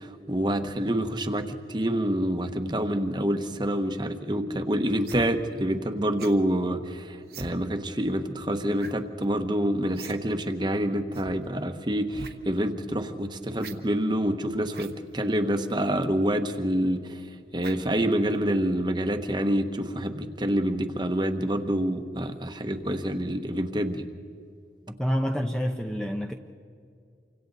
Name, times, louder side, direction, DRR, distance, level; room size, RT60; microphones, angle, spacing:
voice 1, 0.0-17.2 17.5-24.1, right 1 dB, 25° right, 7 dB, 1.2 m, -27 dB
sound 1, 5.0-5.3 6.2-6.4 7.3-7.5 8.8-9.0 9.2-9.3 9.9-10.2 10.4-10.5 11.1-11.3 12.1-12.3 13.6-13.8 14.7-14.9 15.8-15.9 17.6-17.9 18.4-18.5, right 4 dB, 60° right, 1.3 m, -42 dB
voice 2, 25.0-26.3, equal, 5° left, 3 dB, 0.8 m, -27 dB
29.0 x 25.5 x 4.1 m, 2.3 s
head